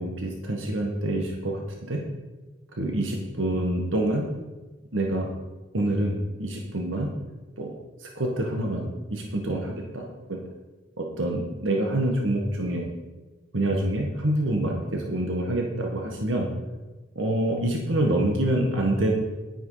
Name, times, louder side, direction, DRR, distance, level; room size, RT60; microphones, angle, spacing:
voice 1, 0.0-2.0 2.7-4.3 4.9-5.3 5.7-7.1 7.6-7.7 8.0-10.4 11.0-12.9 13.5-16.5 17.1-19.1, right 1 dB, 85° right, 1 dB, 1.6 m, -26 dB
11.0 x 9.4 x 4.9 m, 1.2 s
head